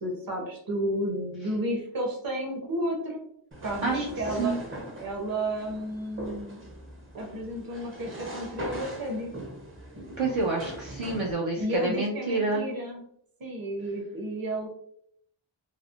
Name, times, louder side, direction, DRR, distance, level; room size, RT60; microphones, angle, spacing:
voice 1, 0.0-3.2 3.6-4.5 5.0-6.6 7.2-9.3 11.6-13.1 13.4-14.7, right 1 dB, 45° right, 0 dB, 0.9 m, -32 dB
sound 1, 3.5-11.3, right 1 dB, 25° right, 0.6 m, -40 dB
voice 2, 10.2-12.6, right 3 dB, 70° right, -2 dB, 0.7 m, -28 dB
3.3 x 2.0 x 2.4 m, 0.67 s
wide cardioid pair, 90°, 48 cm